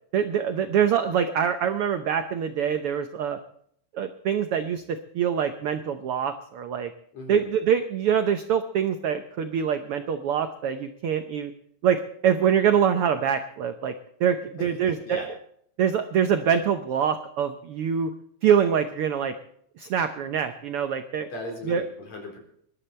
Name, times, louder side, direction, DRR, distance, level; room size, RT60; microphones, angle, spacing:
voice 1, 0.1-3.4 3.9-6.9 7.3-11.5 11.8-13.9 14.2-15.3 15.8-18.1 18.4-19.3 19.8-21.3 21.6-21.8, right 8 dB, 80° right, 8 dB, 1.3 m, -24 dB
voice 2, 7.1-7.5 14.9-15.3 21.3-22.4, left 1 dB, 60° left, 1 dB, 5.2 m, -37 dB
21.5 x 12.0 x 4.3 m, 0.67 s
omnidirectional pair, 3.6 m